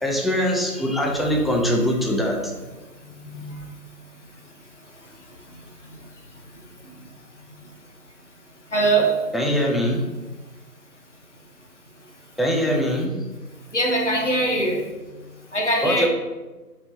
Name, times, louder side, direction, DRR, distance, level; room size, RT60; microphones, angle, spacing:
voice 1, 0.0-2.5 9.3-10.0 12.4-13.1 15.8-16.1, equal, ahead, -1 dB, 0.4 m, -22 dB
voice 2, 8.7-9.1 13.7-14.9 15.5-16.1, right 2 dB, 45° left, 0 dB, 0.6 m, -21 dB
4.2 x 3.2 x 2.8 m, 1.2 s
figure-of-eight pair, 170°, 49 cm